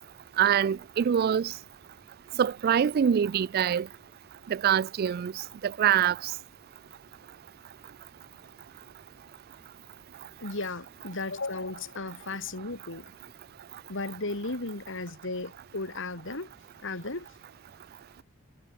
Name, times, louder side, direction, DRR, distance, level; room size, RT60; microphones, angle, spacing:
voice 1, 0.4-1.5 2.4-3.9 4.5-5.3 5.6-6.2, right 8 dB, 45° right, 0.3 m, -24 dB
voice 2, 10.4-13.1 13.9-16.5 16.8-17.3, left 3 dB, 65° left, 2.9 m, -35 dB
head